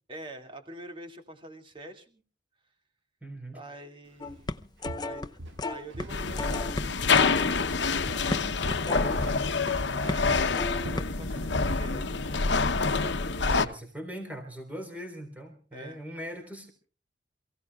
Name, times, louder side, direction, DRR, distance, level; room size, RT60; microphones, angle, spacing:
voice 1, 0.1-2.2 3.5-4.5 4.9-5.3 5.6-9.2 9.9-13.5 15.7-16.0, right 1 dB, 30° right, 4 dB, 2.4 m, -46 dB
voice 2, 3.2-3.6 9.0-9.5 13.4-16.7, equal, 10° right, 4 dB, 4.2 m, -40 dB
sound 1, 4.2-5.3 5.6-6.1 6.4-9.7 10.1-10.3 10.5-11.0, left 2 dB, 25° left, 0.7 m, -34 dB
Walk footsteps, 4.3-4.5 4.8-6.2 6.5-7.8 8.1-11.6 11.9-12.2 12.6-12.7, right 1 dB, 85° right, 2.0 m, -43 dB
sound 2, 6.1-13.6, left 4 dB, 70° left, 0.9 m, -27 dB
28.0 x 16.5 x 2.4 m, 0.38 s
head